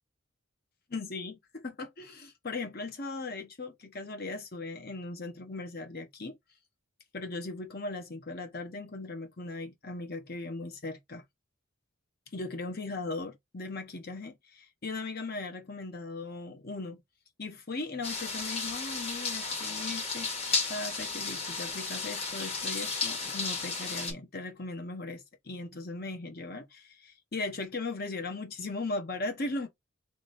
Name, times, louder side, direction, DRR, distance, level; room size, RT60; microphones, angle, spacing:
voice 1, 0.9-6.4 7.1-11.2 12.3-17.0 17.4-20.4 20.7-29.7, left 3 dB, 50° left, 1.0 m, -38 dB
sound 1, 18.0-24.1, left 4 dB, 30° left, 1.5 m, -33 dB
3.2 x 3.1 x 4.1 m
head